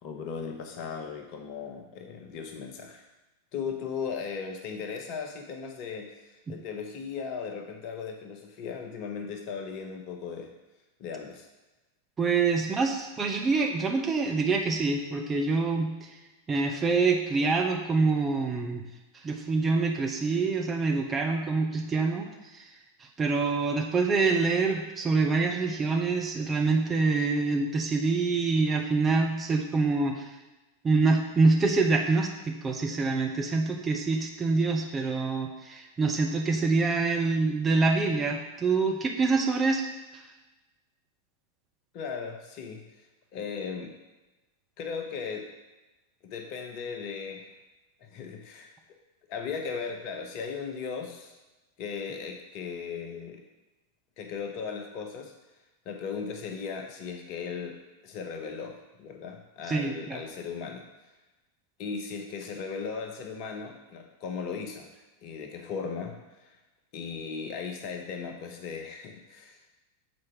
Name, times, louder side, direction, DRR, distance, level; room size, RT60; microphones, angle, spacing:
voice 1, 0.0-3.0 3.5-10.5 11.0-11.5 41.9-42.8 43.3-43.9 44.8-45.5 46.2-47.5 48.0-48.7 49.3-51.3 51.8-53.4 54.2-55.3 55.8-57.8 58.0-60.8 61.8-64.9 65.2-66.2 66.4-66.6 66.9-69.6, left 6 dB, 45° left, 4 dB, 0.9 m, -37 dB
voice 2, 12.2-16.1 16.5-18.8 19.2-22.3 22.5-22.6 23.2-30.2 30.8-39.8 40.1-40.2 59.7-60.2, right 4 dB, 20° right, 1 dB, 1.0 m, -26 dB
7.3 x 4.7 x 4.8 m, 1.1 s
figure-of-eight pair, 90°, 0 cm